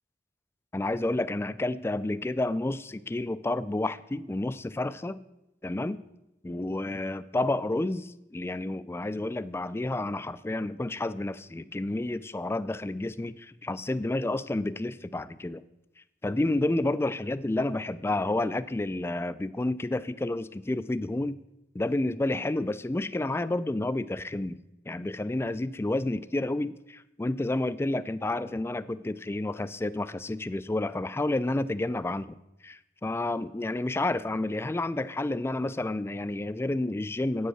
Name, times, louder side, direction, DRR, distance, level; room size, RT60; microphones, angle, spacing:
voice 1, 0.7-5.2 5.6-6.0 6.4-15.6 16.2-21.4 21.7-24.6 24.9-32.4 32.6-37.5, left 2 dB, 15° left, 15 dB, 0.3 m, -30 dB
8.7 x 7.9 x 6.4 m, 0.89 s
head